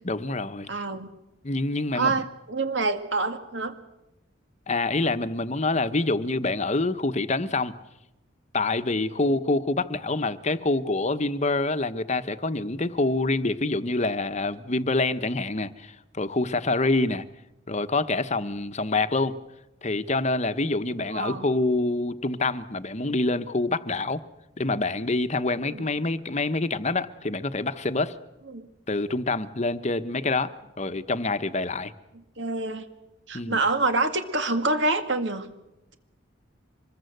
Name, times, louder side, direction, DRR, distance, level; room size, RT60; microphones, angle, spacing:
voice 1, 0.0-0.8 1.4-2.1 4.7-7.7 8.5-17.2 17.7-19.4 19.8-24.2 24.6-28.1 28.9-30.5 30.8-31.9 33.3-33.6, left 2 dB, 35° left, 12 dB, 1.1 m, -26 dB
voice 2, 0.7-1.1 1.9-3.7 21.1-21.4 25.6-25.8 28.5-28.7 32.4-32.8 33.3-35.5, right 3 dB, 60° right, 8 dB, 2.1 m, -26 dB
25.5 x 21.0 x 8.0 m, 0.91 s
head